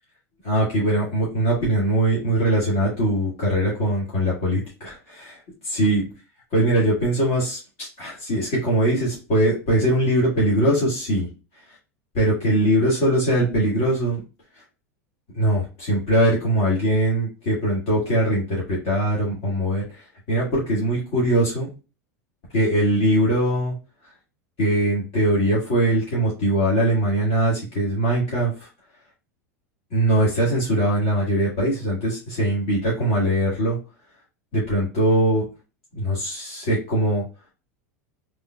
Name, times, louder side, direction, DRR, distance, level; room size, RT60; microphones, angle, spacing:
voice 1, 0.4-6.0 6.5-11.3 11.7-11.8 12.1-14.2 15.3-21.7 22.5-23.7 24.6-28.7 29.9-33.8 34.5-35.4 35.9-37.2, right 1 dB, 60° left, -6 dB, 1.7 m, -21 dB
3.6 x 3.2 x 2.3 m, 0.32 s
hypercardioid pair, 95°, 8 cm